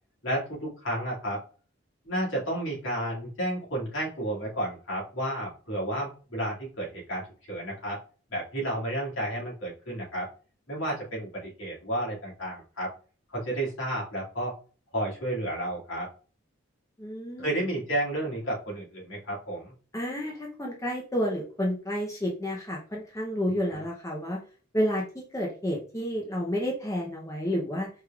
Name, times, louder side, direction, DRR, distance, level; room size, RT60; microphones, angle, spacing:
voice 1, 0.2-1.4 2.0-8.0 8.3-10.3 10.7-12.9 13.3-14.5 14.9-16.1 17.4-19.7, right 1 dB, 65° left, -4 dB, 2.1 m, -31 dB
voice 2, 17.0-17.5 19.9-24.4 24.7-27.9, equal, 15° left, -2 dB, 0.6 m, -30 dB
4.7 x 3.3 x 2.3 m, 0.37 s
head